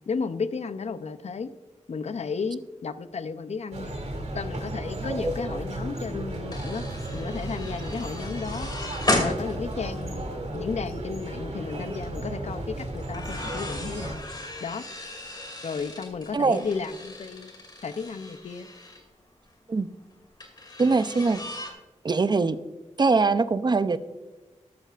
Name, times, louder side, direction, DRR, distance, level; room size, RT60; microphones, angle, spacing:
voice 1, 0.1-1.5 1.9-4.0 4.3-6.8 7.1-8.7 9.2-10.3 10.5-14.3 14.6-14.8 15.6-17.5 17.8-18.7, left 5 dB, 60° left, 12 dB, 0.6 m, -33 dB
sound 1, 3.7-14.1, right 1 dB, 65° right, 2.6 m, -34 dB
sound 2, 6.0-10.7 11.1-11.3 12.9-19.0 20.4-21.7, left 1 dB, 35° left, 2.5 m, -35 dB
voice 2, 20.8-21.4 22.0-22.6 23.0-24.0, right 4 dB, 35° right, 13 dB, 0.5 m, -22 dB
13.5 x 13.0 x 2.5 m, 1.2 s
wide cardioid pair, 110°, 12 cm